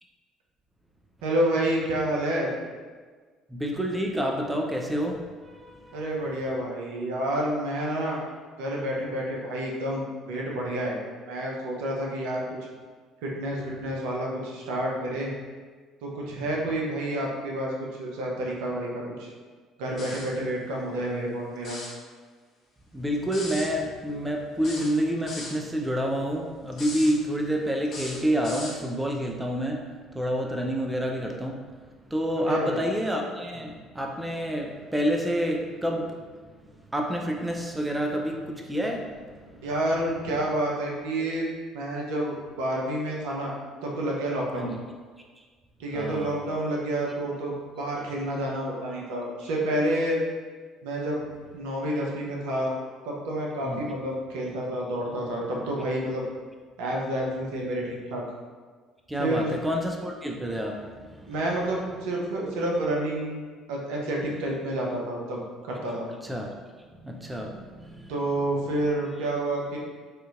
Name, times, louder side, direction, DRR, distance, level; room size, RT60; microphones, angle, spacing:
voice 1, 1.2-2.5 5.9-8.2 8.6-12.4 13.2-15.3 16.0-19.3 19.8-21.8 32.4-32.8 39.6-43.5 43.8-44.7 45.8-50.2 50.8-51.2 51.5-52.7 53.0-56.2 56.8-58.2 59.2-59.5 61.3-63.4 63.7-66.1 68.1-69.8, right 1 dB, 70° right, -2 dB, 0.6 m, -29 dB
voice 2, 3.5-6.0 22.9-31.7 32.1-36.6 36.9-39.7 44.5-44.8 45.9-46.4 53.6-53.8 59.1-61.3 66.2-66.5 67.0-68.1, equal, 10° right, 1 dB, 0.4 m, -29 dB
sound 1, 20.0-20.4 21.6-22.0 23.3-23.7 24.6-25.6 26.7-27.1 27.9-28.8, left 2 dB, 45° left, 0.9 m, -38 dB
4.3 x 2.5 x 2.4 m, 1.5 s
hypercardioid pair, 55°, 0 cm